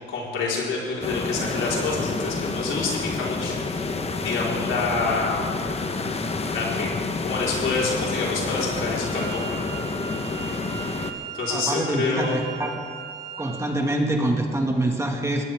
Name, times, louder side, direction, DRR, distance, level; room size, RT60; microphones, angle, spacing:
voice 1, 0.0-5.6 6.5-9.7 11.4-12.4, left 3 dB, 75° left, -4 dB, 4.6 m, -28 dB
sound 1, 1.0-11.1, left 3 dB, 30° left, 1.2 m, -29 dB
Wind instrument woodwind instrument, 9.0-13.8, right 6 dB, 75° right, 3.1 m, -38 dB
voice 2, 11.5-12.8 13.4-15.4, right 1 dB, 15° right, 1 dB, 2.0 m, -25 dB
20.5 x 16.0 x 3.7 m, 2.3 s
cardioid pair, 90°, 20 cm